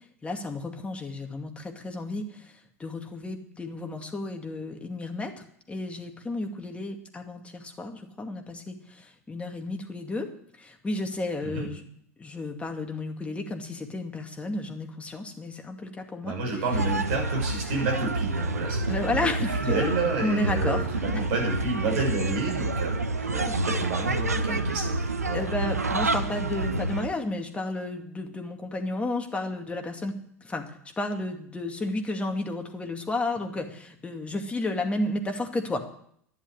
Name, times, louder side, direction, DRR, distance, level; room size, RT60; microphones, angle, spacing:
voice 1, 0.2-10.3 10.6-11.9 12.2-16.4 18.9-19.9 20.2-21.3 23.5-23.6 25.3-35.8, left 2 dB, 15° left, 4 dB, 2.3 m, -32 dB
voice 2, 16.2-19.3 19.6-25.4, right 3 dB, 55° right, 2 dB, 6.5 m, -30 dB
sound 1, 16.7-27.1, right 2 dB, 85° right, 1.0 m, -28 dB
11.0 x 10.5 x 9.1 m, 0.67 s
figure-of-eight pair, 85°, 8 cm